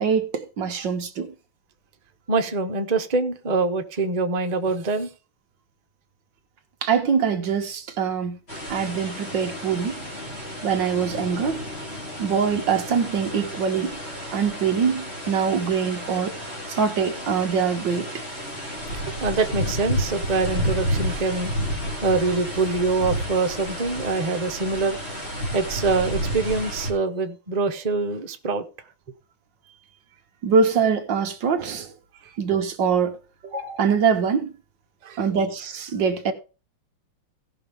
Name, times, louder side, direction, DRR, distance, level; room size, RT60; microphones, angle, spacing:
voice 1, 0.0-1.3 6.8-8.4 8.7-10.0 10.6-11.6 12.2-13.9 14.3-16.4 16.7-18.2 30.4-31.9 32.4-33.2 33.4-34.5 35.2-36.3, right 6 dB, 60° right, 1.6 m, -23 dB
voice 2, 2.3-5.1 14.1-14.4 19.2-21.5 22.0-25.0 25.5-28.6 35.0-35.2, right 3 dB, 80° right, 0.3 m, -24 dB
sound 1, 8.5-26.9, equal, 25° left, 3.1 m, -31 dB
17.0 x 6.1 x 3.5 m
omnidirectional pair, 2.4 m